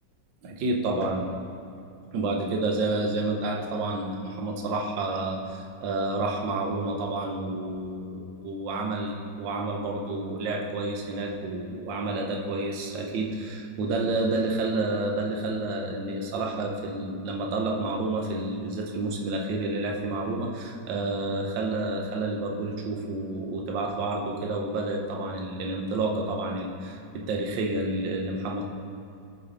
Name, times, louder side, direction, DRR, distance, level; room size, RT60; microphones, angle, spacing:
voice 1, 0.4-1.3 2.1-28.7, right 2 dB, 70° right, 1 dB, 1.6 m, -29 dB
14.5 x 5.4 x 3.5 m, 2.5 s
omnidirectional pair, 2.1 m